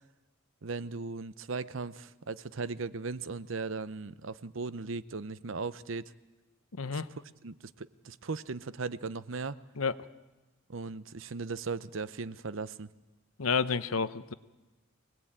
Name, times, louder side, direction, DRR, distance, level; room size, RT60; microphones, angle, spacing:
voice 1, 0.6-6.1 6.9-7.0 7.4-9.6 10.7-12.9, right 4 dB, 65° right, 16 dB, 0.8 m, -37 dB
voice 2, 6.7-7.1 9.8-9.9 13.4-14.3, left 5 dB, 90° left, 14 dB, 0.9 m, -30 dB
24.5 x 19.0 x 8.9 m, 1.1 s
head